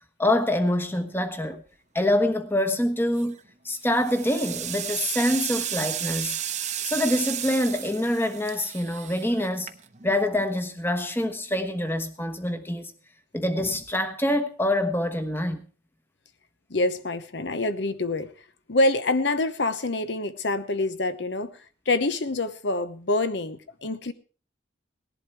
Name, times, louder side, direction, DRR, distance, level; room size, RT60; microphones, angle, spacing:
voice 1, 0.2-1.6 1.9-3.4 3.6-6.4 6.8-9.7 10.0-12.9 13.3-15.6, left 1 dB, 10° left, 1.2 m, -25 dB
sound 1, 3.0-3.4 3.9-10.1, right 10 dB, 35° right, 0.9 m, -33 dB
voice 2, 16.7-18.3 18.7-21.5 21.9-24.1, left 2 dB, 60° left, 0.9 m, -26 dB
18.0 x 11.0 x 4.7 m
head